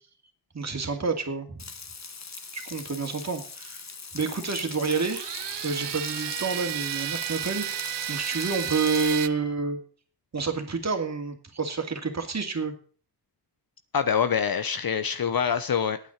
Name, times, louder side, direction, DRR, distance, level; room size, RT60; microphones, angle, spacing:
voice 1, 0.5-1.6 2.5-3.8 4.1-5.2 5.6-7.7 8.1-9.8 10.3-12.7, right 4 dB, 40° right, 5 dB, 2.5 m, -29 dB
Frying (food), 1.6-9.1, left 4 dB, 40° left, 1.5 m, -40 dB
sound 1, 4.9-9.3, right 11 dB, 85° right, 0.7 m, -33 dB
voice 2, 13.9-16.0, left 7 dB, 55° left, 11 dB, 1.0 m, -25 dB
9.2 x 8.6 x 8.1 m, 0.43 s
cardioid pair, 85°, 41 cm